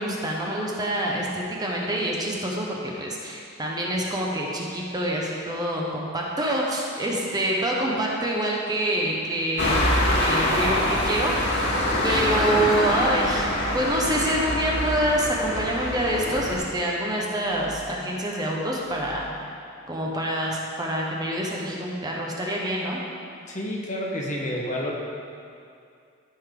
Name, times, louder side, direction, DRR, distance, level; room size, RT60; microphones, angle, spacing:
voice 1, 0.0-9.8 10.2-11.6 12.0-13.5 13.7-19.5 19.9-23.0, right 1 dB, 20° right, -2 dB, 1.0 m, -26 dB
sound 1, 9.6-16.6, left 1 dB, 55° left, 2.3 m, -24 dB
sound 2, 12.9-13.9 14.6-15.0 16.0-16.4 17.3-18.0 18.6-19.4, right 1 dB, 50° right, 2.4 m, -48 dB
voice 2, 23.5-24.9, left 1 dB, 40° left, -2 dB, 1.3 m, -29 dB
14.5 x 5.4 x 3.8 m, 2.4 s
head